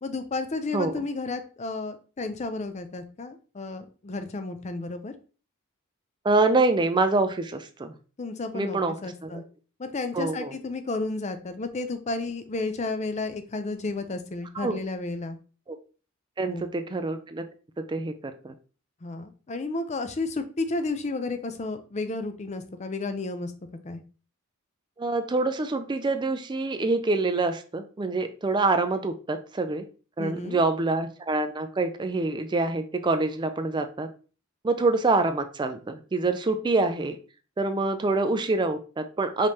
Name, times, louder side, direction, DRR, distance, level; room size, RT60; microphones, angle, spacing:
voice 1, 0.0-5.1 8.2-9.4 9.8-15.4 16.5-16.6 19.0-23.5 23.8-24.0 30.2-30.6, left 3 dB, 35° left, 9 dB, 0.5 m, -32 dB
voice 2, 6.2-7.9 8.5-9.4 10.1-10.5 14.6-14.8 15.7-15.8 16.4-17.5 17.9-18.5 25.0-29.9 30.2-34.1 34.6-37.2 37.6-39.5, right 3 dB, 20° right, 8 dB, 0.4 m, -26 dB
5.0 x 3.3 x 2.8 m, 0.37 s
head